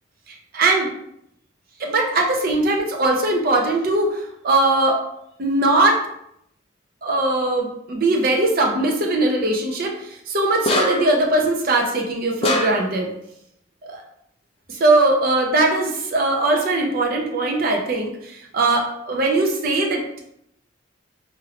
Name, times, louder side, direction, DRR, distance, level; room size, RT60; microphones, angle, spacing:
voice 1, 0.5-0.9 1.8-5.0 5.4-6.0 7.0-13.1 13.9-14.0 14.7-20.0, right 2 dB, 45° right, 1 dB, 0.5 m, -20 dB
sound 1, 10.7-11.2 12.4-13.0, left 1 dB, 30° left, 0.3 m, -23 dB
3.0 x 2.5 x 2.9 m, 0.76 s
head